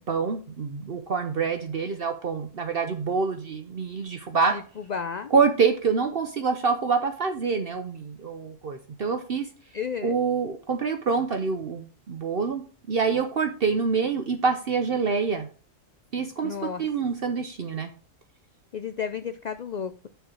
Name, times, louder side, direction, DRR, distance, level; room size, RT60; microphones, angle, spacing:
voice 1, 0.1-4.5 5.3-9.5 10.0-12.6 12.9-15.5 16.1-16.5 16.8-17.9, right 5 dB, 55° right, 6 dB, 0.9 m, -26 dB
voice 2, 4.5-5.3 9.7-10.2 16.4-16.8 18.7-20.1, left 6 dB, 65° left, 10 dB, 0.4 m, -33 dB
6.6 x 4.6 x 6.2 m, 0.38 s
omnidirectional pair, 1.3 m